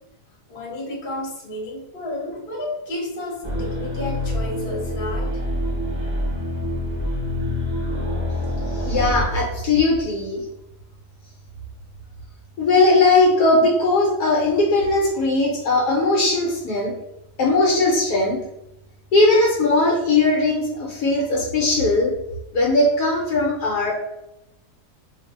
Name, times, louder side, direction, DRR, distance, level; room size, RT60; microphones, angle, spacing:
voice 1, 0.5-5.3, left 1 dB, 40° left, -4 dB, 1.1 m, -31 dB
sound 1, 3.4-9.2, left 1 dB, 15° right, 0.7 m, -26 dB
voice 2, 8.8-10.4 12.6-16.9 17.4-18.4 19.1-22.1 22.5-23.9, left 2 dB, 70° left, -2 dB, 1.2 m, -19 dB
2.6 x 2.5 x 4.1 m, 0.88 s
omnidirectional pair, 1.8 m